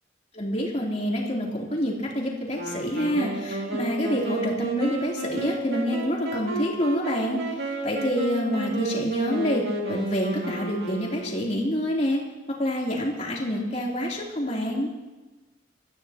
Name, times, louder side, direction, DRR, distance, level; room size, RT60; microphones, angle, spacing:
voice 1, 0.3-12.2 12.6-14.9, equal, 40° left, -3 dB, 3.5 m, -27 dB
Wind instrument woodwind instrument, 2.5-11.6, right 2 dB, 60° right, 2.6 m, -32 dB
26.0 x 14.0 x 3.0 m, 1.2 s
head